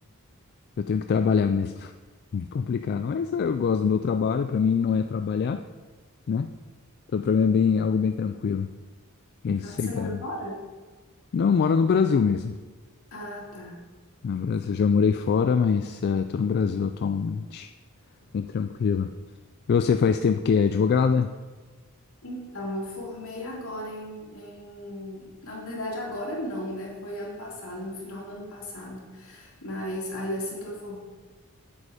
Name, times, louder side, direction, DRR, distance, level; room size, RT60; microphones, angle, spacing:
voice 1, 0.8-1.9 2.3-5.6 6.3-6.5 7.1-8.7 9.4-10.2 11.3-12.6 14.2-17.7 18.3-19.1 19.7-21.3, left 6 dB, 50° left, 8 dB, 0.3 m, -24 dB
voice 2, 9.6-10.6 13.1-13.8 22.2-31.0, left 1 dB, 75° left, -3 dB, 2.7 m, -35 dB
8.1 x 7.6 x 4.9 m, 1.3 s
head